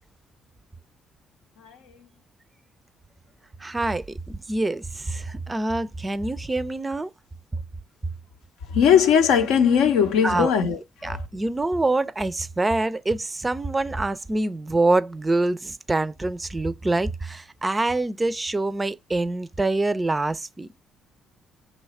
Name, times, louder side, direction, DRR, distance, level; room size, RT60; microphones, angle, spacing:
voice 1, 1.6-2.0 8.7-11.2, left 7 dB, 75° left, 0.5 m, -20 dB
voice 2, 3.6-7.1 10.2-10.5 11.0-20.8, right 2 dB, 20° right, 0.4 m, -25 dB
3.0 x 2.3 x 4.1 m
hypercardioid pair, 50°, 0 cm